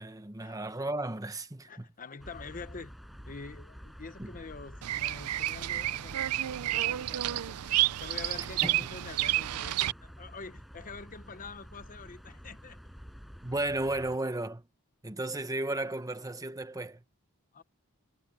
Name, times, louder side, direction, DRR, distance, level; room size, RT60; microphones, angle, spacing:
voice 1, 0.0-1.9 4.2-4.3 8.6-8.9 13.4-14.6 15.0-17.0, right 2 dB, 15° right, 1.1 m, -34 dB
voice 2, 1.7-2.9 3.2-7.6 8.0-12.8 17.5-17.6, left 4 dB, 40° left, 0.9 m, -46 dB
sound 1, 2.2-14.2, equal, ahead, 5.8 m, -49 dB
Bird vocalization bird call bird song, 4.8-9.9, right 15 dB, 85° right, 0.4 m, -30 dB
head